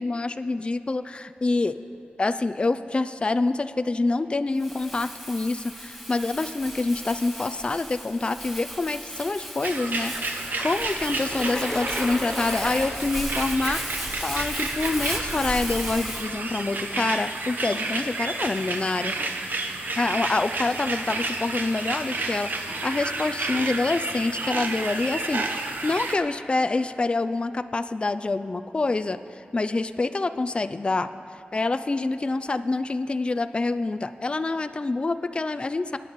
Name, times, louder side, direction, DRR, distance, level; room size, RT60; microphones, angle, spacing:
voice 1, 0.0-1.8 2.2-19.2 20.0-31.1 31.5-36.0, left 3 dB, 30° left, 11 dB, 0.3 m, -26 dB
Crumpling crinkling, 4.6-16.3, equal, 5° right, 1.5 m, -36 dB
sound 1, 9.6-26.1, right 2 dB, 65° right, 0.9 m, -31 dB
sound 2, 11.3-16.3, left 1 dB, 15° left, 0.7 m, -37 dB
23.5 x 9.6 x 3.1 m, 2.7 s
wide cardioid pair, 90°, 3 cm